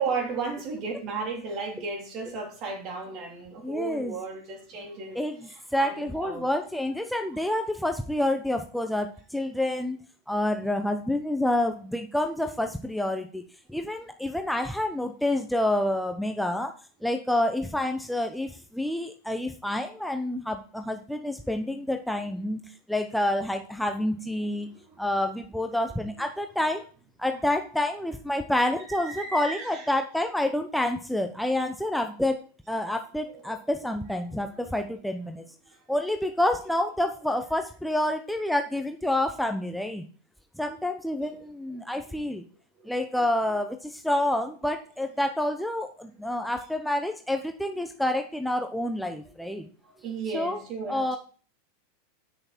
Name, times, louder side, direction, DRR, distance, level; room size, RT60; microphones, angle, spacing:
voice 1, 0.0-6.5 24.7-25.0 28.9-29.9 33.3-33.6 42.8-42.9 46.0-46.1 49.9-51.2, right 4 dB, 45° right, 3.3 m, -34 dB
voice 2, 3.6-4.1 5.1-10.0 10.3-13.4 13.7-16.7 17.0-22.6 22.9-24.7 25.0-26.8 27.2-32.4 32.7-35.4 35.9-40.0 40.6-42.4 42.9-49.6 50.3-50.6 50.9-51.2, left 1 dB, ahead, 0.9 m, -28 dB
8.3 x 6.5 x 4.4 m
hypercardioid pair, 100°, 0 cm